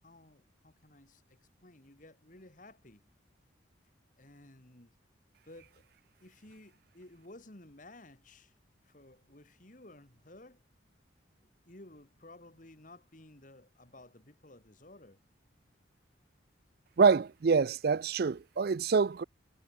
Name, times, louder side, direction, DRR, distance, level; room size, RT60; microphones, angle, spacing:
voice 1, 0.0-3.0 4.2-4.9 5.4-5.8 6.2-8.5 8.8-10.6 11.4-15.2, left 1 dB, 40° left, 2.2 m, -55 dB
voice 2, 17.0-19.2, right 5 dB, 50° right, 0.4 m, -26 dB
head